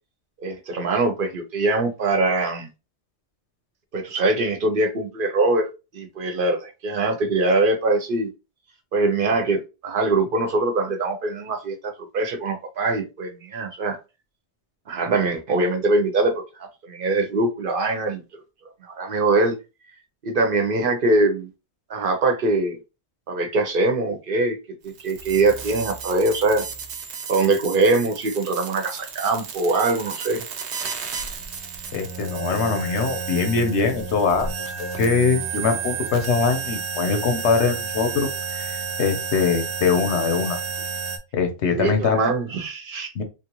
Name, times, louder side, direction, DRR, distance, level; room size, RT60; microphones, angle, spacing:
voice 1, 0.4-2.7 3.9-5.7 5.9-8.3 8.9-14.0 14.9-16.3 16.8-18.2 18.8-19.6 20.2-21.5 21.9-22.8 23.3-24.6 24.8-26.6 27.3-30.4 41.7-43.1, right 2 dB, 60° right, 0.8 m, -22 dB
sound 1, 24.9-41.2, right 5 dB, 80° right, 0.9 m, -32 dB
voice 2, 31.9-40.6 41.3-42.2 43.1-43.2, left 5 dB, 85° left, 1.0 m, -22 dB
3.2 x 2.4 x 2.9 m
omnidirectional pair, 1.1 m